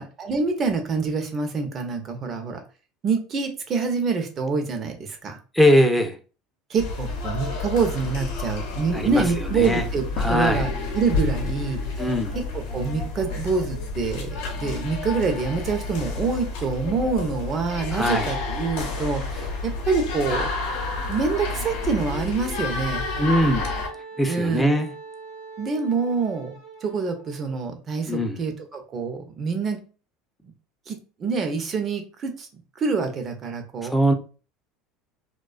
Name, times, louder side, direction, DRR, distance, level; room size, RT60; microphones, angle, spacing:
voice 1, 0.0-2.6 3.0-5.4 6.7-12.1 12.3-20.5 21.1-23.1 24.3-24.7 25.6-26.6 26.8-29.8 30.9-32.5 32.8-34.0, right 4 dB, 40° right, 5 dB, 0.6 m, -26 dB
voice 2, 5.5-6.2 8.9-9.8 10.2-10.7 12.0-12.4 17.9-18.3 23.2-23.7 24.2-24.9 28.1-28.4 33.8-34.1, equal, 5° left, 4 dB, 0.5 m, -21 dB
sound 1, 6.8-23.9, left 3 dB, 80° left, 0.7 m, -30 dB
Wind instrument woodwind instrument, 22.9-27.6, right 4 dB, 75° right, 0.8 m, -42 dB
2.3 x 2.2 x 2.4 m, 0.35 s
supercardioid pair, 90°, 0 cm